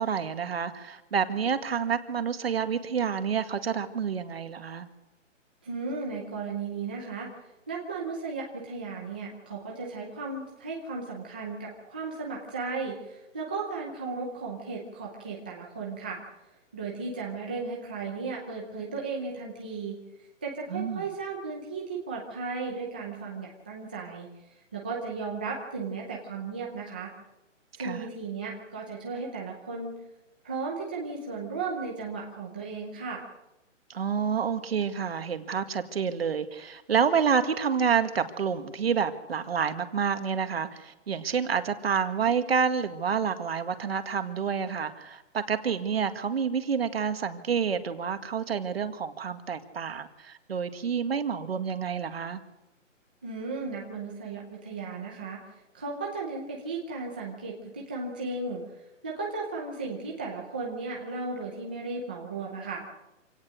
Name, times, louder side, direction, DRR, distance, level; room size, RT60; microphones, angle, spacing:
voice 1, 0.0-4.9 20.7-21.1 27.8-28.1 33.9-52.4, right 6 dB, 50° right, 9 dB, 2.0 m, -28 dB
voice 2, 5.6-7.3 7.7-16.2 16.7-20.0 20.4-24.3 24.7-27.1 27.8-30.0 30.4-33.3 53.2-58.6 59.0-62.8, right 4 dB, 5° right, -3 dB, 0.7 m, -35 dB
27.0 x 17.5 x 6.4 m, 0.96 s
hypercardioid pair, 170°, 38 cm